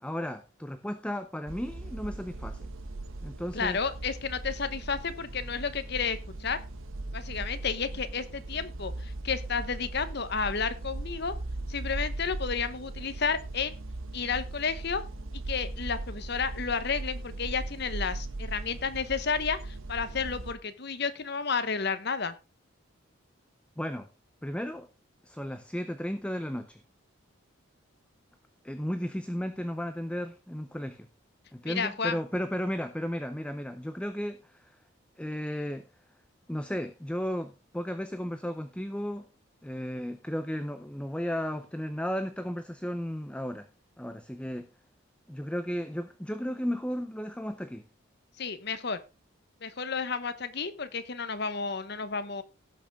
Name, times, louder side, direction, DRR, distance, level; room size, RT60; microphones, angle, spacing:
voice 1, 0.0-2.7 3.2-3.8 23.8-24.1 24.4-24.9 25.2-26.8 28.6-31.1 31.5-34.8 35.2-35.9 36.5-39.3 39.6-43.7 44.0-44.7 45.3-47.8, equal, 5° left, 0.5 m, -34 dB
sound 1, 1.5-20.5, right 2 dB, 80° right, 1.0 m, -38 dB
voice 2, 3.5-6.6 7.1-11.3 11.7-13.8 14.1-15.0 15.5-22.3 31.7-32.2 48.4-49.0 49.6-52.4, left 5 dB, 55° left, 1.1 m, -31 dB
17.0 x 6.4 x 3.6 m
head